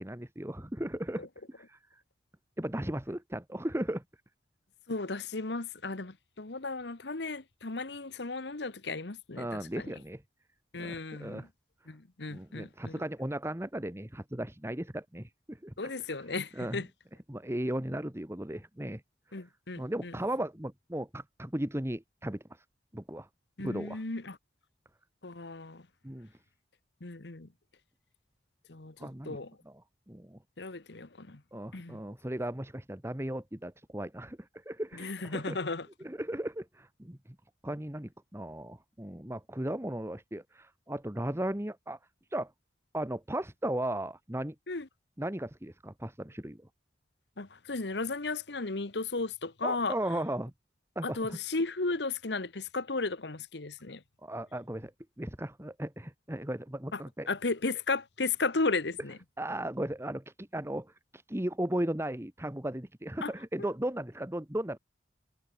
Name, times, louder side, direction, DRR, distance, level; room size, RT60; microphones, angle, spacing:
voice 1, 0.0-2.0 2.6-4.0 9.4-10.2 10.8-11.5 12.3-15.9 16.5-16.9 17.3-19.0 19.8-22.6 22.9-23.3 23.6-24.0 26.0-26.3 29.0-29.4 29.6-29.8 30.1-30.4 31.5-35.6 36.0-37.2 37.6-42.0 42.3-42.5 42.9-44.5 45.2-46.6 49.6-50.5 50.9-51.4 54.2-54.9 55.2-57.3 59.4-64.8, right 1 dB, 15° right, 1.4 m, -36 dB
voice 2, 4.9-9.9 10.7-11.5 11.9-13.0 15.8-16.9 19.3-20.1 23.6-24.4 25.2-25.8 27.0-27.5 28.7-29.5 30.6-31.4 31.7-32.0 35.0-35.9 44.7-44.9 47.4-50.0 51.0-54.0 56.9-57.0 57.3-59.2 63.2-63.3 63.6-63.7, left 3 dB, 70° left, 1.3 m, -35 dB
head